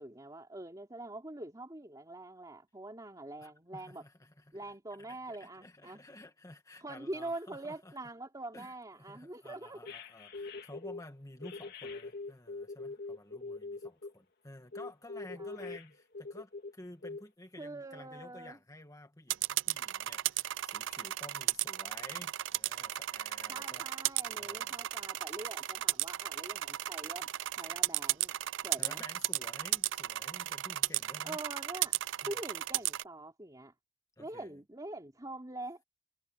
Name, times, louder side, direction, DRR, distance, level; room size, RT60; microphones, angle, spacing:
voice 1, 0.0-4.0 4.5-6.0 6.8-9.8 15.4-15.6 17.6-18.6 23.5-27.3 27.6-28.4 28.6-29.0 31.2-32.0 32.3-33.7 34.2-35.8, right 2 dB, 20° right, 2.9 m, -44 dB
voice 2, 3.4-4.6 5.1-7.9 8.5-23.9 24.3-25.1 28.8-31.4 32.2-32.3 34.2-34.6, left 1 dB, 20° left, 1.9 m, -52 dB
sound 1, 9.9-11.0 11.4-14.1 14.7-16.7 17.0-17.2, left 3 dB, 55° left, 2.5 m, -43 dB
sound 2, 19.3-33.0, right 14 dB, 75° right, 0.4 m, -34 dB
head